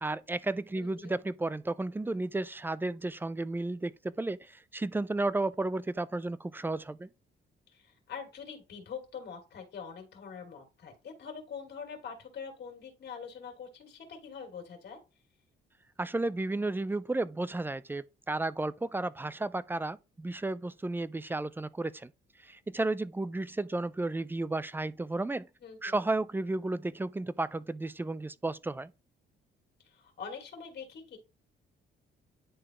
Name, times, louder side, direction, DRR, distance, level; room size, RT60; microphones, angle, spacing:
voice 1, 0.0-7.1 16.0-22.1 22.4-25.5 25.8-28.9, right 2 dB, 10° right, 0.4 m, -33 dB
voice 2, 0.8-1.1 7.7-15.0 25.6-25.9 29.8-31.2, left 6 dB, 55° left, 2.6 m, -44 dB
10.0 x 3.7 x 3.0 m
cardioid pair, 90°, 20 cm